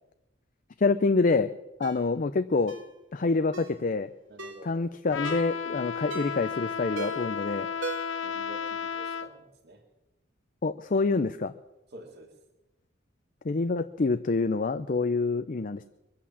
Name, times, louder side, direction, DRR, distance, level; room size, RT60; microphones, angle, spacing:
voice 1, 0.8-1.5 1.8-2.7 3.1-4.1 4.6-7.7 10.6-11.5 13.4-15.8, left 3 dB, 45° left, 10 dB, 0.5 m, -26 dB
Ringtone, 1.8-2.0 2.7-2.9 3.5-3.8 4.4-4.7 5.2-5.5 6.1-6.5 7.0-7.4 7.8-8.3 8.6-8.7, right 4 dB, 80° right, 2.3 m, -39 dB
voice 2, 4.3-4.8 7.5-7.9 8.2-9.8 11.9-12.4, right 1 dB, 55° right, -2 dB, 2.1 m, -49 dB
Trumpet, 5.1-9.3, left 7 dB, 75° left, 0.8 m, -33 dB
23.0 x 8.6 x 7.2 m, 0.98 s
head